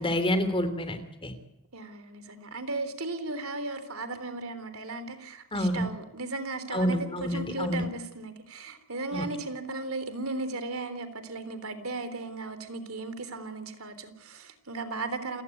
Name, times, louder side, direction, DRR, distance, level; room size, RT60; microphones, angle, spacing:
voice 1, 0.0-1.3 5.5-5.8 6.7-7.8 9.1-9.3, left 1 dB, 25° left, 10 dB, 3.2 m, -28 dB
voice 2, 1.7-15.4, right 3 dB, 70° right, 11 dB, 3.5 m, -36 dB
29.0 x 16.5 x 9.8 m, 0.84 s
head